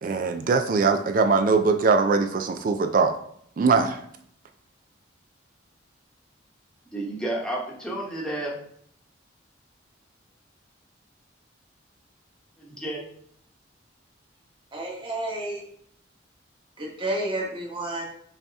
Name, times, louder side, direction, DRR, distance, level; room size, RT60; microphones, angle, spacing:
voice 1, 0.0-3.1 3.6-4.0, right 4 dB, 45° right, 7 dB, 0.3 m, -21 dB
voice 2, 6.9-8.6 12.6-13.1, right 1 dB, 5° left, -4 dB, 1.0 m, -31 dB
voice 3, 14.7-15.6 16.8-18.0, right 1 dB, 25° right, -3 dB, 1.2 m, -30 dB
5.5 x 2.8 x 3.4 m, 0.65 s
head